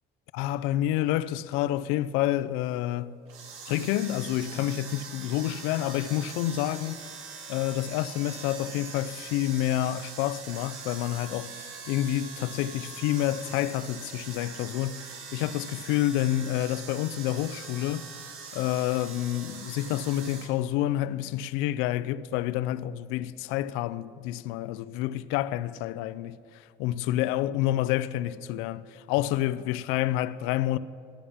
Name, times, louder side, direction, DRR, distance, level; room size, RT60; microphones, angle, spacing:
voice 1, 0.3-3.2 3.7-7.1 7.5-11.5 11.9-18.0 18.5-26.4 26.8-30.8, left 13 dB, 90° left, 0.4 m, -28 dB
sound 1, 3.3-20.5, right 5 dB, 85° right, 1.6 m, -43 dB
11.5 x 10.0 x 5.7 m
cardioid pair, 125°, 20 cm